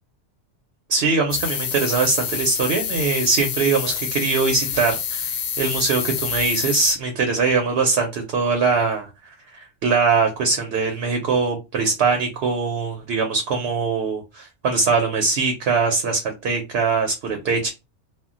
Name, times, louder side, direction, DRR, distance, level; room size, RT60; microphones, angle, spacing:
voice 1, 0.9-9.3 9.8-17.7, right 4 dB, 65° right, 4 dB, 0.8 m, -22 dB
sound 1, 1.3-6.9, left 7 dB, 65° left, 0.7 m, -27 dB
2.2 x 2.1 x 3.6 m, 0.25 s
omnidirectional pair, 1.2 m